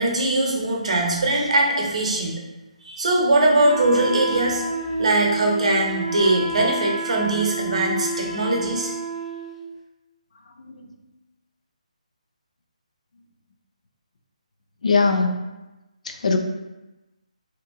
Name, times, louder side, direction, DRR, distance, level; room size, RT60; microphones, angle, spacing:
voice 1, 0.0-2.4 2.8-4.6 4.9-8.9, right 2 dB, 60° right, -1 dB, 0.6 m, -21 dB
Wind instrument woodwind instrument, 3.6-9.6, right 2 dB, 20° right, 0.8 m, -29 dB
voice 2, 14.8-15.4 16.0-16.4, left 4 dB, 65° left, 4 dB, 0.4 m, -21 dB
2.9 x 2.5 x 2.2 m, 1.0 s
figure-of-eight pair, 155°, 4 cm